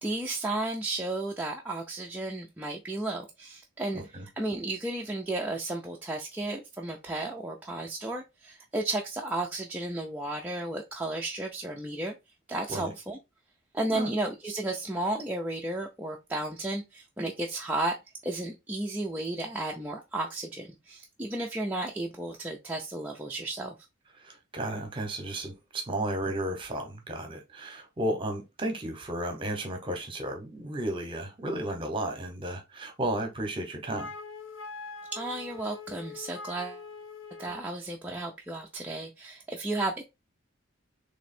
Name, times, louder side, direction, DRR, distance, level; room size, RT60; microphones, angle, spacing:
voice 1, 0.0-4.0 4.4-12.1 12.5-13.2 13.7-18.0 18.2-23.8 35.1-36.8 37.4-40.0, right 2 dB, 10° right, 0.4 m, -33 dB
voice 2, 3.9-4.3 12.7-12.9 13.9-14.1 24.2-34.1, right 1 dB, 25° right, 0.9 m, -33 dB
Wind instrument woodwind instrument, 33.9-37.7, left 4 dB, 60° left, 0.6 m, -43 dB
3.4 x 3.0 x 4.3 m
head